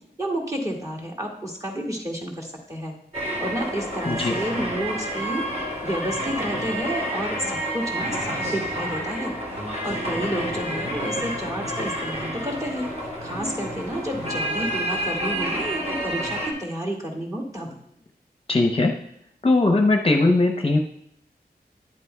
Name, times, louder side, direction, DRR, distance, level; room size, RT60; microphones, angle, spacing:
voice 1, 0.2-3.0 3.4-9.3 9.8-12.9 13.2-17.7, right 1 dB, 20° right, 0 dB, 2.0 m, -30 dB
sound 1, 3.1-16.5, equal, 40° right, 2.2 m, -29 dB
voice 2, 18.5-18.9 19.4-20.8, left 2 dB, 35° left, 3 dB, 0.7 m, -19 dB
10.5 x 8.2 x 2.3 m, 0.74 s
wide cardioid pair, 60°, 17 cm